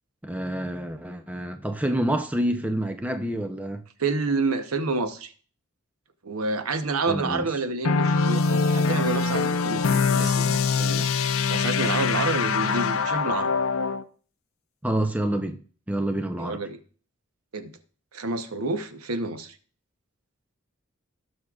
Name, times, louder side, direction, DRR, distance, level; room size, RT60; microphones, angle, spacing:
voice 1, 0.2-3.8 7.1-7.5 14.8-15.6 15.9-16.6, right 1 dB, 5° right, 0.5 m, -27 dB
voice 2, 4.0-5.3 6.2-11.1 11.5-13.5 16.4-16.8 17.5-17.7 18.1-19.6, right 3 dB, 85° right, 0.9 m, -28 dB
sound 1, 7.8-14.0, left 5 dB, 75° left, 0.5 m, -23 dB
18.0 x 6.3 x 2.4 m
head